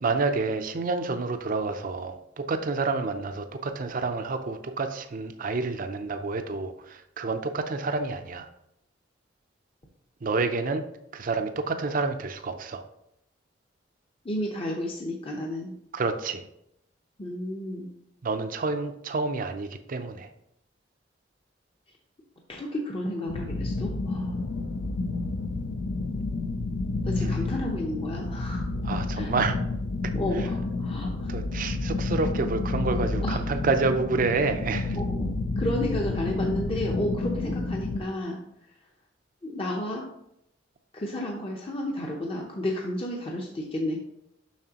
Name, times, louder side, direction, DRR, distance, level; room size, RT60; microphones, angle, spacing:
voice 1, 0.0-8.5 10.2-10.8 11.1-12.8 15.9-16.4 18.2-20.3 27.2-27.4 28.8-29.6 31.0-35.0, right 3 dB, 45° right, 7 dB, 0.5 m, -29 dB
voice 2, 14.2-15.7 17.2-17.9 22.5-24.4 27.0-28.7 29.1-29.3 30.1-31.3 33.2-33.4 34.9-35.3 35.6-38.4 39.4-40.1 40.9-44.0, left 1 dB, 30° left, -1 dB, 0.7 m, -32 dB
sound 1, 23.3-38.0, left 3 dB, 75° left, 0.5 m, -30 dB
7.2 x 5.7 x 2.9 m, 0.79 s
head